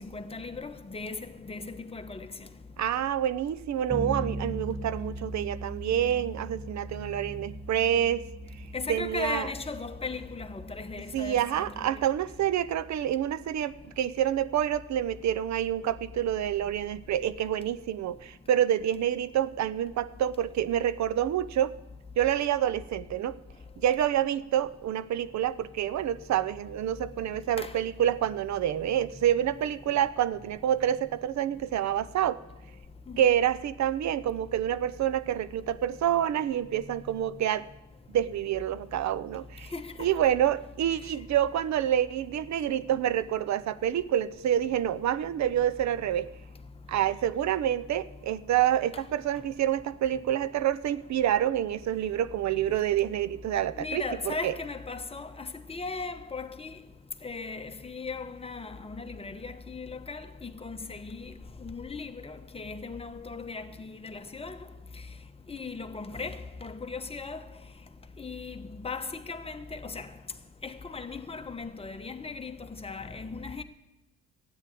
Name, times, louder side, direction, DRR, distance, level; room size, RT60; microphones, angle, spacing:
voice 1, 0.0-2.3 8.7-12.0 27.6-27.7 33.1-33.3 39.7-39.9 53.8-56.7 57.2-61.3 61.6-64.6 65.5-67.4 68.2-70.1 70.6-72.5 72.8-73.6, left 4 dB, 20° left, 1.1 m, -37 dB
voice 2, 2.8-8.3 8.9-9.5 11.1-21.7 22.2-23.4 23.8-32.4 33.2-37.7 38.1-39.7 40.0-46.3 46.9-54.5, right 11 dB, 65° right, 0.7 m, -27 dB
Bass guitar, 3.9-13.5, right 1 dB, 10° right, 1.3 m, -40 dB
13.0 x 9.3 x 8.4 m
cardioid pair, 90°, 30 cm